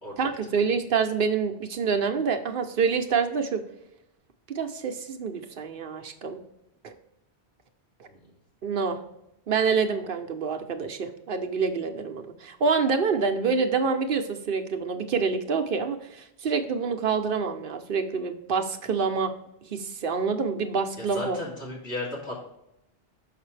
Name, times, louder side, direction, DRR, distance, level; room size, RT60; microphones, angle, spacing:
voice 1, 0.2-3.6 4.5-6.4 6.8-6.9 8.6-9.0 9.5-19.3 19.7-21.4, right 5 dB, 60° right, 5 dB, 0.8 m, -27 dB
voice 2, 21.0-22.4, left 2 dB, 75° left, -6 dB, 2.8 m, -35 dB
6.6 x 5.4 x 3.2 m, 0.83 s
omnidirectional pair, 1.1 m